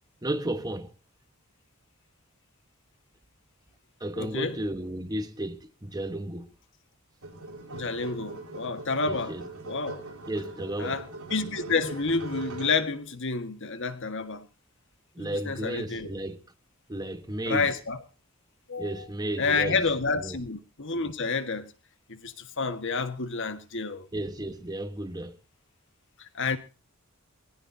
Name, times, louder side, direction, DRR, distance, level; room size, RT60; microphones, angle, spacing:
voice 1, 0.2-0.9 4.0-6.5 9.0-9.5 10.3-11.0 15.1-16.4 16.9-17.7 18.8-19.8 20.1-20.4 24.1-25.4, right 1 dB, 20° right, 1.3 m, -33 dB
voice 2, 4.2-4.5 7.7-9.3 9.7-10.0 10.8-11.0 11.3-14.5 15.2-16.1 17.4-18.0 18.7-19.0 19.4-21.7 22.1-24.1 26.2-26.6, left 4 dB, 60° left, 1.7 m, -29 dB
sound 1, 7.2-12.9, right 2 dB, 80° right, 7.1 m, -41 dB
22.5 x 15.5 x 2.8 m
head